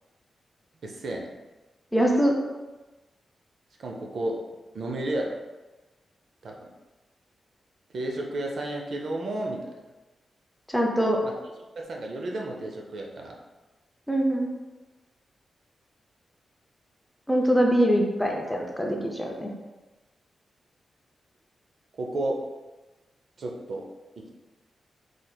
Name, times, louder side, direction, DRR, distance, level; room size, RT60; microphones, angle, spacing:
voice 1, 0.8-1.3 3.8-4.4 4.7-5.4 6.4-6.7 7.9-9.6 11.2-11.3 11.8-13.4 22.0-22.4 23.4-23.9 24.2-24.3, right 1 dB, 55° right, 0 dB, 0.5 m, -32 dB
voice 2, 1.9-2.3 10.7-11.2 14.1-14.5 17.3-19.5, equal, ahead, 0 dB, 0.4 m, -23 dB
3.9 x 3.2 x 2.2 m, 1.1 s
wide cardioid pair, 145°, 0 cm